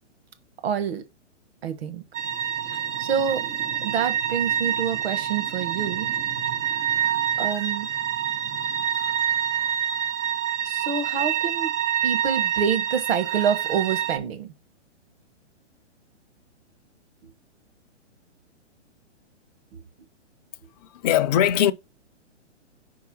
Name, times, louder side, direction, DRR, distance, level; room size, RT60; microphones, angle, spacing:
voice 1, 0.6-1.0 1.6-2.0 3.0-3.4 3.8-6.1 7.4-7.9 10.6-11.7 12.0-14.5 19.7-19.8, right 7 dB, 55° right, 1.4 m, -27 dB
sound 1, 2.1-14.2, right 10 dB, 75° right, 1.3 m, -27 dB
voice 2, 20.9-21.7, left 11 dB, 35° left, 0.5 m, -20 dB
4.7 x 4.6 x 6.0 m
hypercardioid pair, 135°, 36 cm